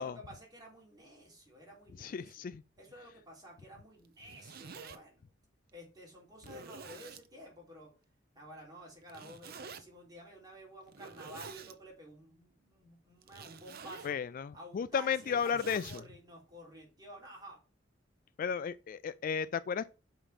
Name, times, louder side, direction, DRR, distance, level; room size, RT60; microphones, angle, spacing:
voice 1, 0.0-2.4 2.8-5.2 5.7-7.9 8.3-14.2 14.5-17.6, equal, 20° right, 3.4 m, -52 dB
voice 2, 2.0-2.6 14.0-16.0 18.4-19.9, left 6 dB, 45° left, 0.3 m, -34 dB
Zipper (clothing), 4.1-5.0 5.7-5.8 6.4-7.3 9.1-9.8 10.9-11.8 13.2-14.2 14.9-16.0, right 5 dB, 50° right, 0.7 m, -49 dB
6.1 x 5.1 x 5.7 m
head